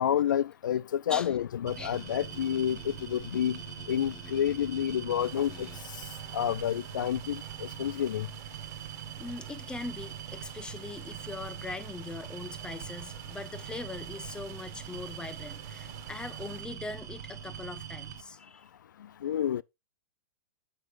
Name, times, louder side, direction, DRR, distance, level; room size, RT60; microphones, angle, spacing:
voice 1, 0.0-3.6 3.9-5.7 6.3-8.3 19.2-19.6, left 10 dB, 85° left, 0.4 m, -29 dB
sound 1, 1.7-7.0, left 11 dB, 35° left, 1.3 m, -51 dB
sound 2, 1.7-18.2, right 10 dB, 70° right, 1.5 m, -43 dB
sound 3, 5.2-16.6, right 11 dB, 40° right, 1.7 m, -52 dB
voice 2, 5.8-6.6 7.4-8.1 9.2-18.7, left 3 dB, 10° left, 1.0 m, -42 dB
9.2 x 8.1 x 2.6 m
hypercardioid pair, 125°, 10 cm